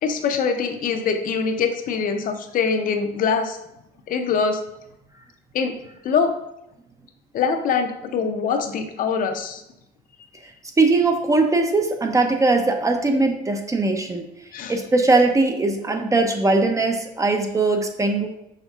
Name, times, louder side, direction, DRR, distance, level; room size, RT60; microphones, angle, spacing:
voice 1, 0.0-3.6 4.1-4.6 5.5-5.7 6.0-6.3 7.3-9.6 14.5-14.8, left 5 dB, 55° left, 6 dB, 0.5 m, -23 dB
voice 2, 10.8-14.2 14.7-18.3, right 3 dB, 20° right, 4 dB, 0.5 m, -20 dB
5.6 x 3.5 x 2.4 m, 0.82 s
cardioid pair, 110°, 17 cm